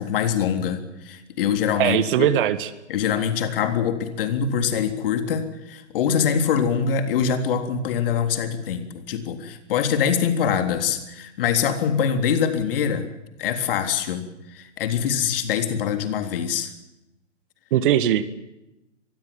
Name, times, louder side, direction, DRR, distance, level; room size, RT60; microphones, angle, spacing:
voice 1, 0.0-2.3 2.9-13.1 13.4-16.7, left 7 dB, 50° left, 8 dB, 3.7 m, -24 dB
voice 2, 1.8-2.7 17.7-18.3, right 11 dB, 45° right, 14 dB, 1.9 m, -20 dB
25.0 x 20.5 x 7.2 m, 0.93 s
hypercardioid pair, 125°, 37 cm